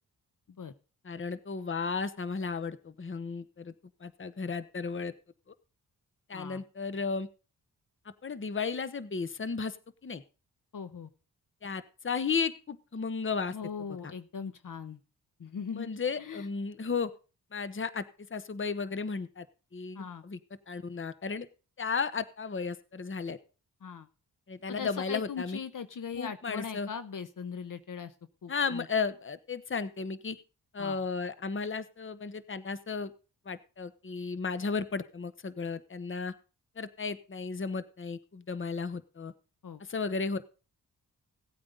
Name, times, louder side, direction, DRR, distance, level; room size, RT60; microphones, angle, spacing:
voice 1, 1.0-3.7 4.0-5.1 6.3-7.3 8.2-9.8 10.0-10.2 11.6-13.5 15.7-17.1 17.5-18.0 18.3-19.4 19.7-20.4 20.7-21.5 21.8-23.4 24.5-25.6 26.2-26.9 28.5-30.4 30.7-33.1 33.5-36.3 36.8-39.3 39.9-40.4, left 5 dB, 30° left, 14 dB, 1.0 m, -34 dB
voice 2, 10.7-11.1 13.5-15.0 15.4-16.5 19.9-20.2 23.8-24.1 24.7-28.1 28.4-28.9 30.8-31.0 39.6-39.8, left 6 dB, 55° left, 11 dB, 1.0 m, -40 dB
17.0 x 8.7 x 3.9 m, 0.35 s
cardioid pair, 55°, 38 cm